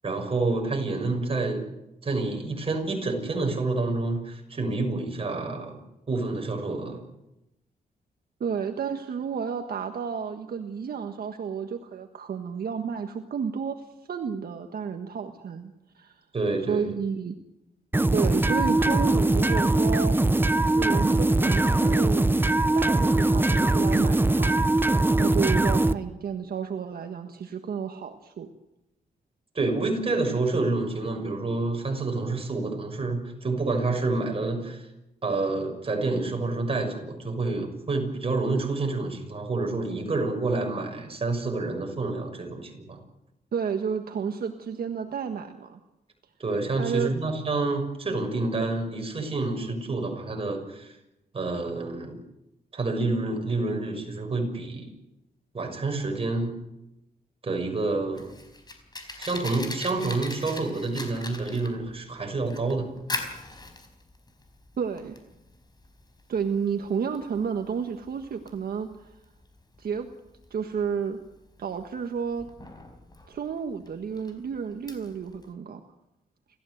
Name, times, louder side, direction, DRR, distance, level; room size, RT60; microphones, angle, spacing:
voice 1, 0.0-1.7 2.0-5.8 6.1-7.0 16.3-16.9 29.5-34.8 35.2-43.0 46.4-50.9 51.3-52.2 52.7-54.9 55.5-56.6 57.4-58.3 59.2-62.9, right 3 dB, 35° right, 3 dB, 6.6 m, -28 dB
voice 2, 8.4-16.2 16.7-17.4 18.1-20.2 20.6-22.2 22.7-28.5 43.5-45.8 46.8-47.1 64.8-65.2 66.3-69.1 69.8-70.1 70.5-71.2 71.6-72.5 73.3-75.8, right 6 dB, 70° right, 5 dB, 1.6 m, -31 dB
sound 1, 17.9-25.9, right 2 dB, 15° right, 0.8 m, -21 dB
Fire, 57.8-75.5, left 2 dB, 25° left, 4.7 m, -41 dB
29.5 x 15.0 x 8.0 m, 0.90 s
cardioid pair, 100°, 16 cm